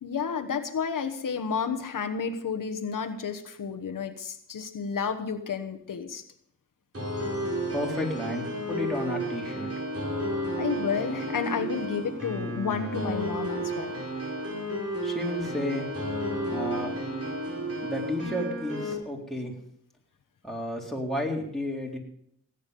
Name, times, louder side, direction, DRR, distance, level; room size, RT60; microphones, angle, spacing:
voice 1, 0.0-6.2 10.5-13.9, left 6 dB, 90° left, 5 dB, 1.1 m, -31 dB
sound 1, 6.9-18.9, right 1 dB, 50° right, 5.8 m, -32 dB
voice 2, 7.7-9.7 15.0-15.9 16.5-16.9 17.8-19.5 20.4-22.0, left 1 dB, ahead, -2 dB, 3.8 m, -32 dB
18.0 x 9.3 x 5.3 m, 0.69 s
wide cardioid pair, 70°, 31 cm